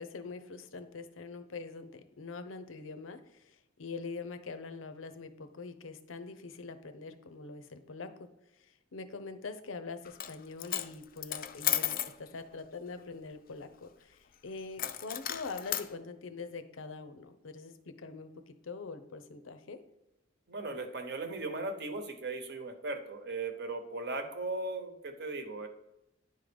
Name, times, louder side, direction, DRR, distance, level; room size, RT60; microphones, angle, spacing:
voice 1, 0.0-3.2 3.8-8.3 8.9-18.3 18.6-19.8, left 4 dB, 85° left, 10 dB, 0.7 m, -44 dB
Coin (dropping), 10.0-10.3 10.6-12.1 14.8-15.9, left 11 dB, 45° left, 0.4 m, -34 dB
voice 2, 20.5-25.7, right 3 dB, 60° right, 6 dB, 1.0 m, -37 dB
9.7 x 3.8 x 5.1 m, 0.90 s
head